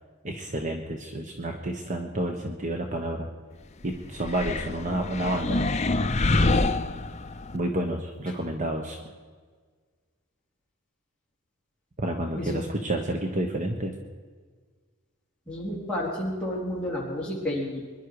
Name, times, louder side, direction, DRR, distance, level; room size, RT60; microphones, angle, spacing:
voice 1, 0.2-3.3 3.8-5.7 7.5-9.0 12.0-13.9, right 1 dB, 35° right, 3 dB, 1.1 m, -30 dB
sound 1, 4.2-7.6, left 2 dB, 30° left, 0.6 m, -26 dB
voice 2, 6.3-6.7 12.4-12.7 15.5-17.8, left 1 dB, 5° left, -6 dB, 4.0 m, -31 dB
23.5 x 11.0 x 4.9 m, 1.5 s
head